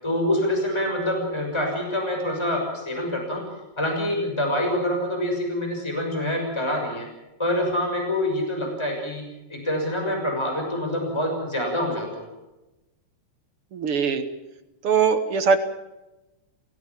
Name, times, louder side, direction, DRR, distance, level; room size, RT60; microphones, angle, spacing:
voice 1, 0.0-3.4 3.8-7.1 7.4-9.2 9.5-12.2, left 1 dB, 10° left, 2 dB, 6.5 m, -26 dB
voice 2, 13.7-14.2 14.8-15.6, right 5 dB, 55° right, 9 dB, 2.0 m, -21 dB
29.0 x 17.0 x 7.4 m, 1.0 s
omnidirectional pair, 3.4 m